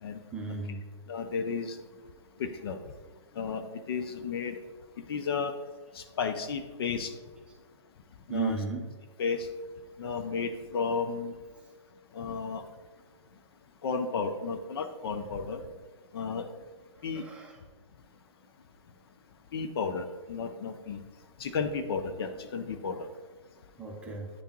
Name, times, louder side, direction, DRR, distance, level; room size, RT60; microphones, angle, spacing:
voice 1, 0.3-0.8 8.3-8.8 17.1-17.6 23.8-24.3, right 4 dB, 5° right, -2 dB, 0.8 m, -35 dB
voice 2, 1.1-1.8 2.4-2.8 3.4-4.6 5.1-5.5 5.9-7.1 8.3-8.6 9.2-9.5 10.0-11.3 12.1-12.6 13.8-15.6 16.1-16.4 17.0-17.2 19.5-21.0 21.4-23.1, left 5 dB, 50° left, 8 dB, 0.5 m, -33 dB
9.8 x 3.4 x 3.0 m, 1.4 s
hypercardioid pair, 140°, 16 cm